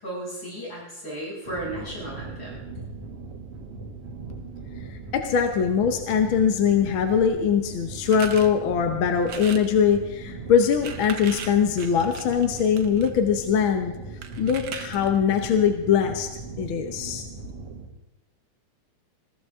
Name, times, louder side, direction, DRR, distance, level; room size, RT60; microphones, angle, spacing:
voice 1, 0.0-2.9, right 1 dB, 35° left, -6 dB, 8.0 m, -35 dB
sound 1, 1.5-17.9, right 4 dB, 50° right, 2.6 m, -39 dB
voice 2, 4.9-13.9 14.4-16.3 16.6-17.2, left 7 dB, 65° left, 6 dB, 1.3 m, -22 dB
sound 2, 8.0-8.5 9.2-9.7 10.6-13.1 14.2-15.2, right 7 dB, 80° right, 0.9 m, -38 dB
21.0 x 16.0 x 3.6 m, 0.99 s
omnidirectional pair, 3.4 m